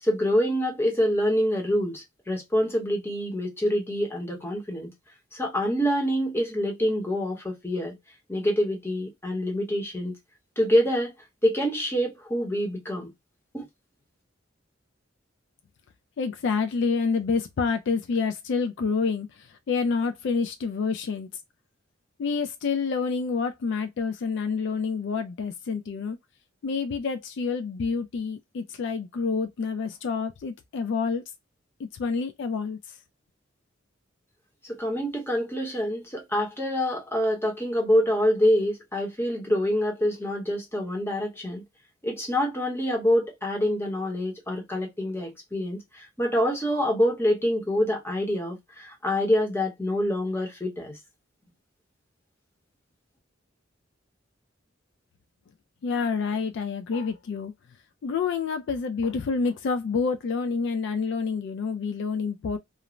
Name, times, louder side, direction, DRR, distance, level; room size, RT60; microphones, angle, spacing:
voice 1, 0.0-4.9 5.3-8.0 8.3-10.2 10.6-11.1 11.4-13.1 13.5-13.7 34.6-41.6 42.0-50.9, equal, 10° left, 0.8 m, -26 dB
voice 2, 16.2-21.3 22.2-26.2 26.6-31.2 31.8-33.0 55.8-57.5 58.0-62.6, left 5 dB, 60° left, 0.3 m, -28 dB
2.4 x 2.0 x 2.9 m
head